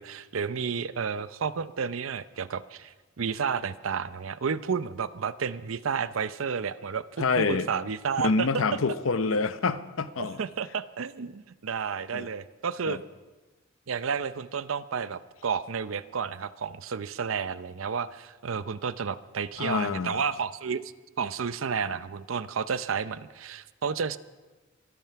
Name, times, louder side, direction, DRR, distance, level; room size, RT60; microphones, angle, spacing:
voice 1, 0.0-8.6 10.2-13.0 13.9-20.8 21.2-24.2, right 6 dB, 75° right, 0.6 m, -31 dB
voice 2, 7.2-7.7 8.2-10.4 12.1-12.3 12.9-13.0 19.6-20.2, left 4 dB, 75° left, 0.7 m, -27 dB
24.5 x 9.2 x 5.8 m
head